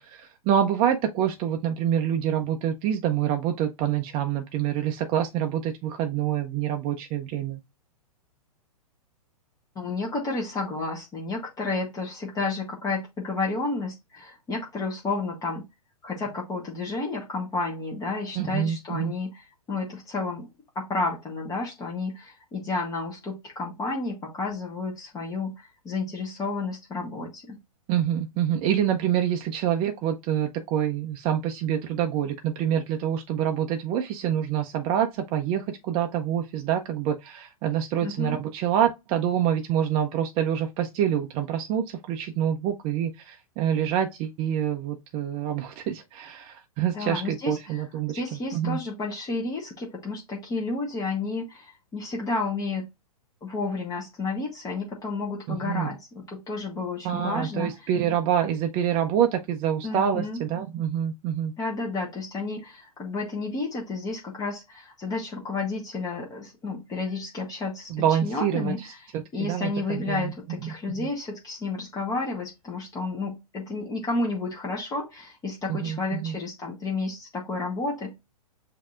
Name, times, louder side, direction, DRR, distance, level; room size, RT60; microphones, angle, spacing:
voice 1, 0.0-7.6 18.4-19.1 27.9-48.2 48.5-48.8 55.5-55.9 57.0-61.5 67.9-68.7 69.4-70.3 70.6-71.1 75.7-76.3, right 9 dB, 30° right, 0.5 m, -26 dB
voice 2, 9.7-15.6 16.0-20.5 20.7-27.6 38.0-38.4 46.9-47.8 48.1-52.8 53.4-57.9 59.8-60.4 61.6-78.1, left 3 dB, 20° left, 1.1 m, -31 dB
7.1 x 2.7 x 2.4 m
figure-of-eight pair, 115°, 19 cm